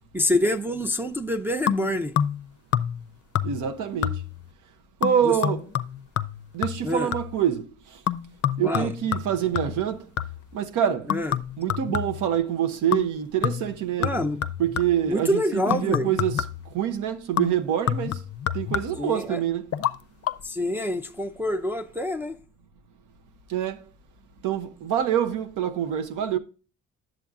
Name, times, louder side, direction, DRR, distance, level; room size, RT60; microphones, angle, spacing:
voice 1, 0.1-2.1 5.3-5.4 6.8-7.1 8.6-8.9 11.1-11.3 14.0-14.4 15.1-16.1 19.0-19.4 20.4-22.4, left 1 dB, 5° right, 0.5 m, -26 dB
sound 1, 1.7-2.5 2.7-3.1 3.3-3.7 4.0-4.5 5.0-7.4 8.1-10.5 11.1-12.4 12.9-13.2 13.4-15.1 15.7-16.7 17.4-19.1 19.7-19.9 20.2-20.3, left 10 dB, 55° left, 0.5 m, -28 dB
voice 2, 3.4-4.2 5.0-5.7 6.5-8.0 8.6-10.1 10.5-11.1 11.6-14.2 14.6-16.5 16.7-18.2 18.5-19.7 23.5-23.8 24.4-26.4, right 9 dB, 85° right, 0.9 m, -26 dB
10.5 x 7.7 x 2.4 m
cardioid pair, 90°, 30 cm